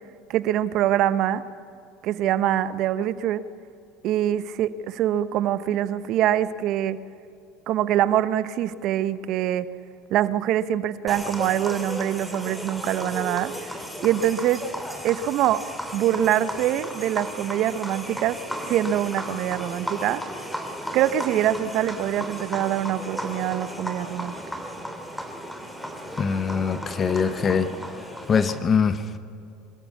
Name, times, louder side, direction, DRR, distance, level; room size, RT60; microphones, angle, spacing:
voice 1, 0.3-1.4 2.0-3.4 4.0-7.0 7.7-9.7 10.1-14.6 15.0-15.6 15.9-20.2 20.9-24.3, right 11 dB, 55° right, 15 dB, 0.9 m, -24 dB
sound 1, 11.1-28.6, equal, ahead, 2.9 m, -35 dB
voice 2, 26.2-27.7 28.3-29.2, left 6 dB, 30° left, 12 dB, 0.9 m, -23 dB
23.5 x 13.5 x 8.4 m, 2.6 s
supercardioid pair, 100°, 0 cm